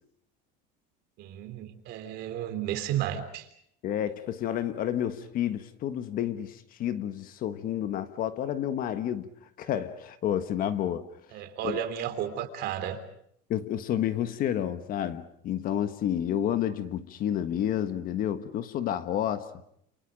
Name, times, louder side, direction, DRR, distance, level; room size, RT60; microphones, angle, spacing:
voice 1, 1.2-3.5 11.3-13.0, right 10 dB, 50° right, 3.5 m, -33 dB
voice 2, 3.8-9.3 9.6-11.0 11.6-11.8 13.5-19.5, left 10 dB, 40° left, 1.4 m, -30 dB
29.0 x 28.5 x 5.3 m
cardioid pair, 155°, 21 cm